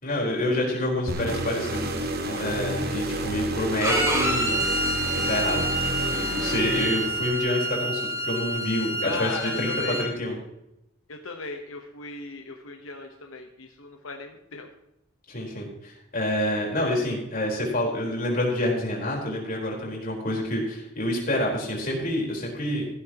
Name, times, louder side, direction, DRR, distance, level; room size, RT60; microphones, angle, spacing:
voice 1, 0.0-4.6 5.1-5.7 6.1-10.3 15.3-22.9, left 1 dB, 45° left, -2 dB, 4.3 m, -28 dB
sound 1, 1.1-7.5, right 1 dB, 50° right, 1.4 m, -30 dB
Bowed string instrument, 3.8-10.1, right 1 dB, 15° right, 2.2 m, -28 dB
voice 2, 9.0-10.0 11.1-14.7, left 3 dB, 90° left, 3 dB, 1.2 m, -37 dB
15.5 x 12.0 x 3.0 m, 0.86 s
head